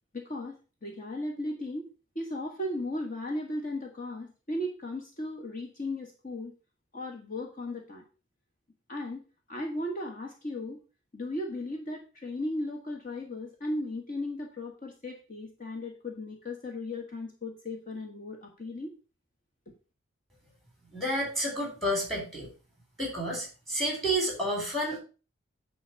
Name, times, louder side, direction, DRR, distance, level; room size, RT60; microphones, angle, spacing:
voice 1, 0.1-1.9 2.1-6.5 6.9-8.0 8.9-9.2 9.5-10.8 11.1-18.9, left 1 dB, 40° left, 2 dB, 1.4 m, -36 dB
voice 2, 20.9-22.5 23.0-25.0, right 1 dB, ahead, 0 dB, 3.8 m, -30 dB
9.7 x 4.1 x 6.4 m, 0.33 s
head